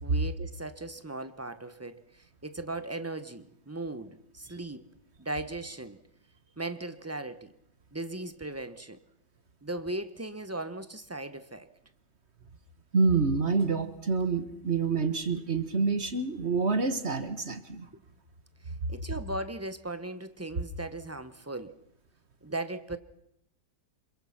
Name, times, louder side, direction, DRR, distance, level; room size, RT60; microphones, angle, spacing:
voice 1, 0.0-4.9 5.2-6.0 6.6-7.5 7.9-9.0 9.6-11.7 18.9-21.7 22.4-23.0, right 2 dB, 15° right, 11 dB, 0.6 m, -38 dB
voice 2, 12.9-17.9, right 4 dB, 40° right, 10 dB, 1.6 m, -27 dB
27.0 x 23.0 x 5.9 m, 0.77 s
omnidirectional pair, 1.9 m